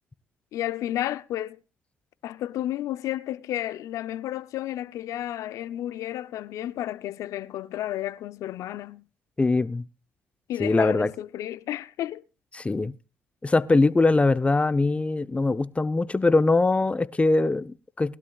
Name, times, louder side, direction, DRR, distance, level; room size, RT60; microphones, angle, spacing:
voice 1, 0.5-1.6 2.2-9.0 10.5-12.2, left 13 dB, 75° left, 0.6 m, -32 dB
voice 2, 9.4-9.8 10.6-11.1 12.5-12.9 13.4-18.2, left 3 dB, 20° left, 0.9 m, -22 dB
20.0 x 12.0 x 2.4 m
supercardioid pair, 60°, 6 cm